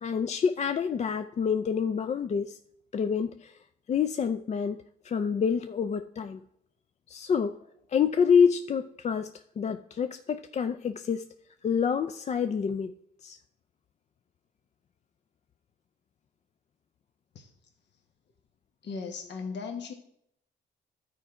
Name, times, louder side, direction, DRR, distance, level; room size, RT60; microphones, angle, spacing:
voice 1, 0.0-2.6 2.9-3.6 3.9-6.4 7.1-7.6 7.9-11.2 11.6-12.9 13.2-13.4, left 6 dB, 35° left, 9 dB, 0.4 m, -27 dB
voice 2, 18.8-19.9, left 5 dB, 60° left, 4 dB, 1.2 m, -37 dB
12.0 x 4.5 x 4.8 m, 0.74 s
cardioid pair, 90°, 20 cm